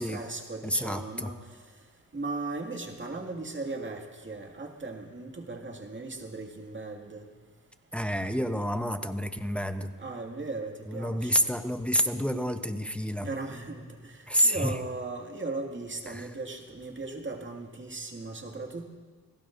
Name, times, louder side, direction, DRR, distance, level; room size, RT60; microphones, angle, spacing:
voice 1, 0.0-1.4 2.1-7.2 10.0-11.5 13.2-18.8, right 3 dB, 30° right, 2 dB, 2.1 m, -37 dB
voice 2, 0.6-1.3 7.9-9.9 10.9-13.3 14.3-14.8 16.1-16.3, equal, 5° left, 7 dB, 0.8 m, -28 dB
28.0 x 17.5 x 2.6 m, 1.5 s
cardioid pair, 105°, 36 cm